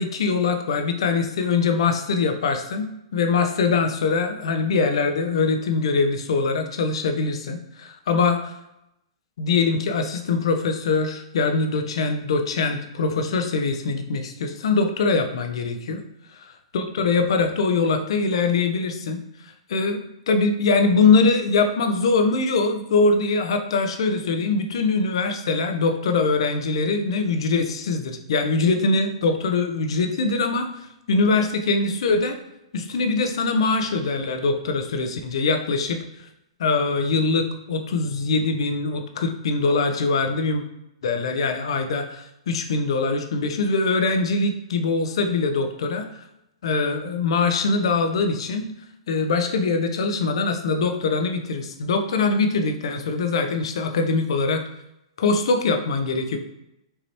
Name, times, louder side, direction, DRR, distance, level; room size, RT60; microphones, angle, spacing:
voice 1, 0.0-2.9 3.1-8.5 9.4-16.0 16.7-19.2 19.7-30.7 31.1-32.4 32.7-36.0 36.6-40.6 41.0-46.1 46.6-48.7 49.1-54.6 55.2-56.4, left 4 dB, 65° left, 6 dB, 0.7 m, -22 dB
5.4 x 3.0 x 2.9 m, 0.87 s
hypercardioid pair, 115°, 3 cm